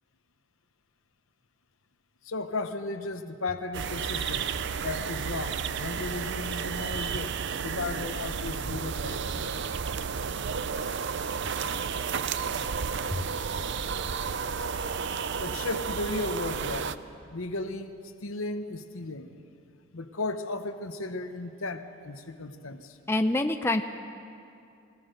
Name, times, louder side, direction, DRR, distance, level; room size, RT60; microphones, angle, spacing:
voice 1, 2.2-4.5 4.8-9.2 15.4-16.9 17.3-17.9 18.2-19.4 19.9-23.0, left 2 dB, 70° left, 9 dB, 1.1 m, -35 dB
sound 1, 3.7-17.0, right 6 dB, 50° right, 0.5 m, -32 dB
voice 2, 23.1-23.8, left 2 dB, 10° left, 6 dB, 0.5 m, -25 dB
23.0 x 17.0 x 6.7 m, 2.6 s
head